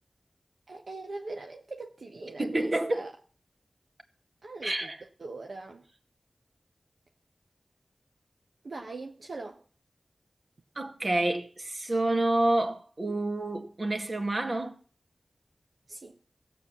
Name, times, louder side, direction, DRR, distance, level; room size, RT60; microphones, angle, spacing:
voice 1, 0.7-3.2 4.4-4.9 5.2-5.8 8.6-9.6 15.9-16.2, right 3 dB, 80° right, 1.1 m, -41 dB
voice 2, 2.4-3.1 4.6-5.0 10.8-14.8, right 2 dB, 50° right, 2.0 m, -28 dB
15.0 x 7.8 x 7.0 m
wide cardioid pair, 50°, 0 cm